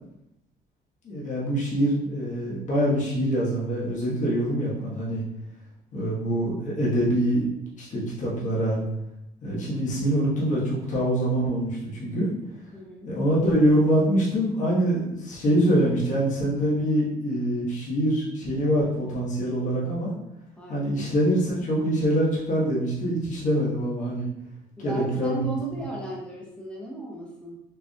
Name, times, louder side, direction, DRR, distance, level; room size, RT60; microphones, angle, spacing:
voice 1, 1.0-5.2 5.9-7.5 7.8-8.8 9.4-12.3 13.1-20.1 20.7-24.3 24.8-25.4, equal, 50° left, -6 dB, 1.4 m, -24 dB
voice 2, 12.7-13.1 19.4-19.9 20.6-21.1 24.8-27.6, right 1 dB, 5° left, -3 dB, 1.1 m, -36 dB
4.9 x 3.2 x 2.4 m, 0.84 s
cardioid pair, 110°, 17 cm